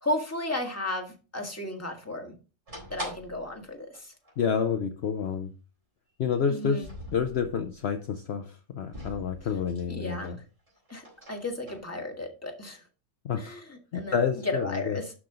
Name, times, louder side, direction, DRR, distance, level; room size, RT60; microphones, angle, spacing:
voice 1, 0.0-2.3 2.9-4.1 6.5-6.9 9.9-10.3 10.9-12.8 13.4-15.0, left 1 dB, 10° left, 2 dB, 1.7 m, -34 dB
sound 1, 2.7-3.5 3.9-4.0 4.2-4.3 5.2-5.3 6.7-7.7 8.9-10.3 10.7-11.8, left 1 dB, 55° right, 4.1 m, -43 dB
voice 2, 4.4-5.5 6.2-10.4 13.2-13.6 13.9-15.0, left 6 dB, 60° left, 7 dB, 0.9 m, -29 dB
12.0 x 4.9 x 3.8 m, 0.34 s
omnidirectional pair, 1.4 m